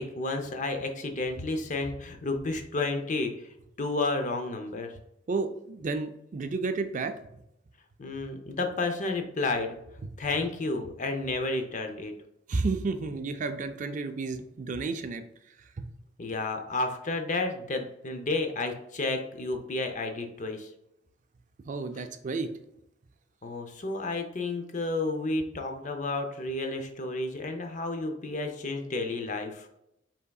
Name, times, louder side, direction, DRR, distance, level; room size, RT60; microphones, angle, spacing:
voice 1, 0.0-3.5 3.8-4.9 8.0-9.8 10.2-12.1 16.2-20.7 23.4-29.7, left 2 dB, 40° left, 5 dB, 0.6 m, -31 dB
voice 2, 5.3-7.1 12.5-15.2 15.8-15.9 21.7-22.5, right 3 dB, 40° right, 8 dB, 0.4 m, -31 dB
5.5 x 3.5 x 2.3 m, 0.81 s
head